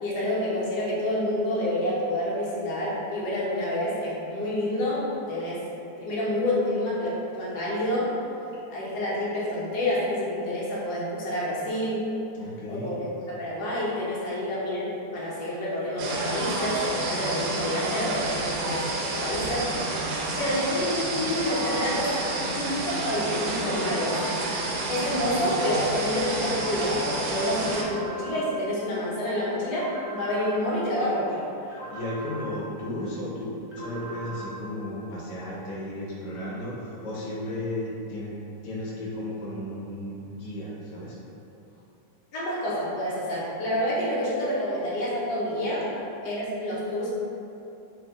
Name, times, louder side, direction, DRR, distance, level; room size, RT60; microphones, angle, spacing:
voice 1, 0.0-5.6 6.0-8.1 8.7-12.1 12.7-13.0 13.3-19.7 20.4-24.2 24.9-31.4 42.3-45.9 46.2-47.1, left 1 dB, 80° left, -7 dB, 1.4 m, -28 dB
voice 2, 12.4-13.1 16.3-16.5 31.6-38.3 38.6-41.2, left 1 dB, 60° left, -6 dB, 1.0 m, -34 dB
sound 1, 16.0-27.8, right 2 dB, 80° right, 1.1 m, -30 dB
sound 2, 27.7-28.5 29.7-30.5 31.7-32.5 33.7-34.5, right 2 dB, 45° right, 0.4 m, -40 dB
3.6 x 2.5 x 3.6 m, 2.8 s
omnidirectional pair, 1.7 m